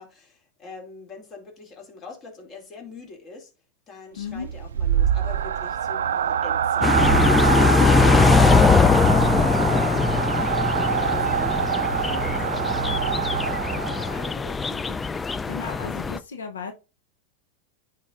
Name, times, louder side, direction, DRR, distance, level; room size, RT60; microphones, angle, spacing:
voice 1, 0.0-3.5 3.9-8.5 8.9-10.4 10.7-15.0, left 3 dB, 35° left, 2.4 m, -42 dB
voice 2, 4.2-4.5 6.8-7.0 15.5-16.7, left 6 dB, 90° left, 0.6 m, -34 dB
sound 1, 4.3-14.3, right 9 dB, 85° right, 0.3 m, -25 dB
sound 2, 6.8-16.2, left 4 dB, 15° left, 0.3 m, -21 dB
9.4 x 4.2 x 2.4 m
hypercardioid pair, 110°, 0 cm